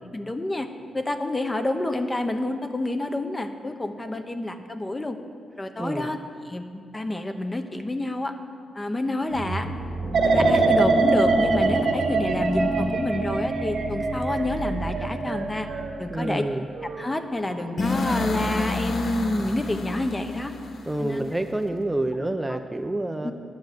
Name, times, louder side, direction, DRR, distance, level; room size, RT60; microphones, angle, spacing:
voice 1, 0.1-0.7 0.9-5.2 5.6-6.2 6.5-6.7 6.9-8.3 8.7-9.7 10.3-15.7 16.0-16.4 17.0-20.5 21.0-21.3 22.5-22.6 23.2-23.3, left 1 dB, 20° left, 7 dB, 0.8 m, -28 dB
voice 2, 5.8-6.1 16.1-16.7 20.9-23.3, right 1 dB, 15° right, 6 dB, 0.5 m, -28 dB
sound 1, 9.3-15.9, right 1 dB, 85° left, 2.8 m, -29 dB
sound 2, 10.1-17.1 17.5-17.9, right 3 dB, 65° right, 1.3 m, -25 dB
sound 3, 17.8-21.7, left 3 dB, 60° left, 1.1 m, -30 dB
10.5 x 7.2 x 6.6 m, 2.2 s
cardioid pair, 70°, 0 cm